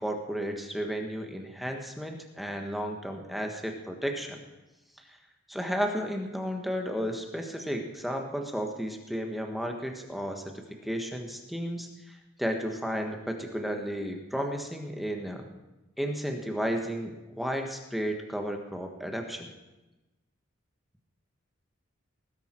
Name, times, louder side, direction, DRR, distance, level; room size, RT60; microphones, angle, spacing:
voice 1, 0.0-4.4 5.5-10.5 10.8-12.1 12.4-15.4 16.0-19.5, equal, ahead, 3 dB, 1.4 m, -33 dB
19.5 x 10.5 x 4.5 m, 1.0 s
head